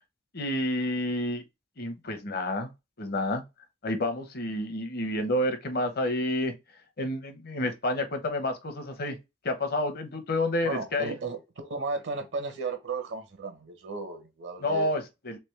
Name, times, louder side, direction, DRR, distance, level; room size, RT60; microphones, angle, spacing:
voice 1, 0.3-1.4 1.8-2.7 3.0-3.4 3.8-6.5 7.0-9.2 9.4-11.1 14.6-15.4, left 1 dB, 55° left, 0.8 m, -29 dB
voice 2, 10.6-14.9, right 3 dB, 65° right, 0.8 m, -34 dB
3.4 x 3.0 x 3.2 m
head